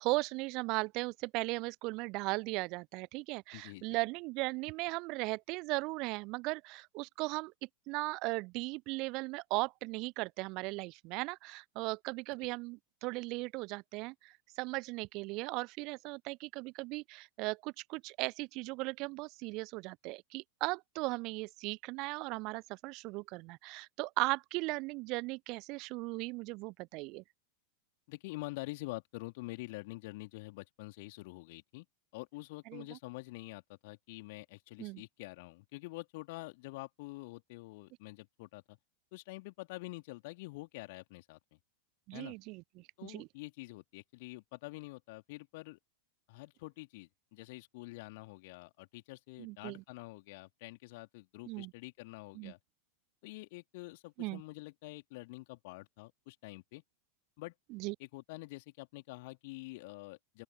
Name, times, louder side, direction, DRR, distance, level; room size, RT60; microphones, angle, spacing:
voice 1, 0.0-7.5 7.9-14.3 14.6-27.2 32.7-32.8 34.8-35.0 42.1-42.6 43.0-43.3 49.4-49.8 51.5-51.7 52.4-52.5 54.2-54.4 57.7-57.9, right 24 dB, 40° right, 0.4 m, -37 dB
voice 2, 3.5-4.0 12.4-12.5 28.1-31.9 32.1-38.8 39.1-41.6 42.1-42.3 43.0-45.8 46.3-52.6 53.2-56.8 57.4-57.5 58.0-60.4, left 23 dB, 50° left, 2.9 m, -47 dB
open air
figure-of-eight pair, 90°, 0 cm